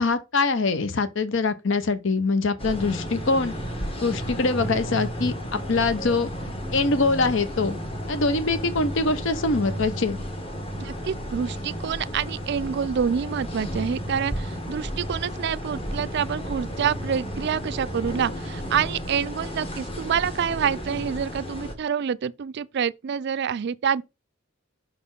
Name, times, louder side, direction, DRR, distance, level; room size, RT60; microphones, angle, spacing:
voice 1, 0.0-3.5 4.0-6.3 6.7-7.8 8.1-10.2, left 3 dB, 65° left, 0.8 m, -23 dB
sound 1, 2.6-21.7, equal, 30° left, 1.4 m, -33 dB
voice 2, 10.8-24.0, right 7 dB, 55° right, 0.4 m, -27 dB
6.1 x 4.2 x 5.3 m
head